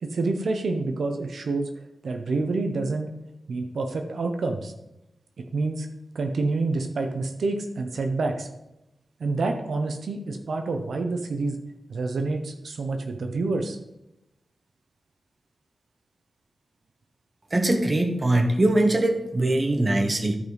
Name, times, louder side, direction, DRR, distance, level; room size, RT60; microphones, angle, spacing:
voice 1, 0.0-1.7 2.0-3.1 3.5-4.7 5.4-5.9 6.1-8.5 9.2-11.6 11.9-13.8, right 3 dB, 80° right, 5 dB, 0.9 m, -27 dB
voice 2, 17.5-20.4, right 1 dB, 30° right, 4 dB, 1.1 m, -22 dB
13.5 x 5.3 x 4.0 m, 0.90 s
wide cardioid pair, 140°, 0 cm